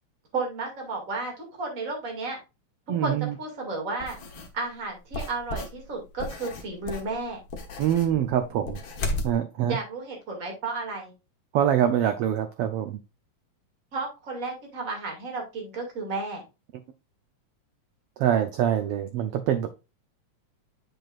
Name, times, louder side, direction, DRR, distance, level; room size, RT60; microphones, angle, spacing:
voice 1, 0.3-2.4 3.0-4.2 4.5-7.4 9.7-11.1 13.9-16.4, right 3 dB, 30° right, 0 dB, 2.4 m, -33 dB
voice 2, 2.9-3.3 7.8-8.8 9.2-9.8 11.5-13.0 18.2-19.7, right 10 dB, 85° right, 8 dB, 1.3 m, -24 dB
sound 1, 4.0-4.5 5.1-9.3, left 1 dB, 60° left, 0.9 m, -34 dB
7.8 x 6.1 x 2.4 m, 0.28 s
omnidirectional pair, 3.3 m